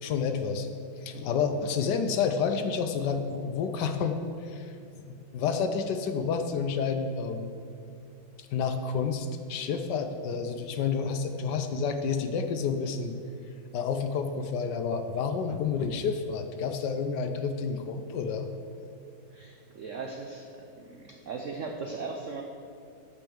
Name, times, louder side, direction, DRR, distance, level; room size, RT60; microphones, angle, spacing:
voice 1, 0.0-0.7 1.0-4.7 5.1-7.5 8.4-13.2 13.7-18.5, left 5 dB, 70° left, 7 dB, 1.1 m, -30 dB
voice 2, 19.3-22.4, right 4 dB, 85° right, 2 dB, 0.6 m, -38 dB
8.9 x 4.6 x 7.0 m, 2.6 s
omnidirectional pair, 2.1 m